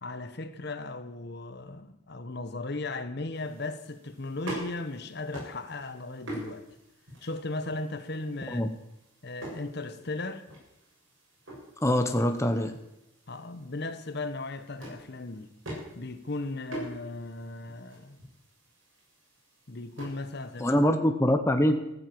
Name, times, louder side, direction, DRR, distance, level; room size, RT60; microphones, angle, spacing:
voice 1, 0.0-6.6 7.2-8.6 9.2-10.4 13.3-15.5 16.0-18.2 19.7-20.8, left 2 dB, 55° left, 1.1 m, -37 dB
sound 1, 3.3-20.9, right 1 dB, 75° right, 7.4 m, -45 dB
voice 2, 11.8-12.7 20.6-21.9, equal, 15° left, 0.9 m, -24 dB
14.5 x 9.4 x 7.8 m
head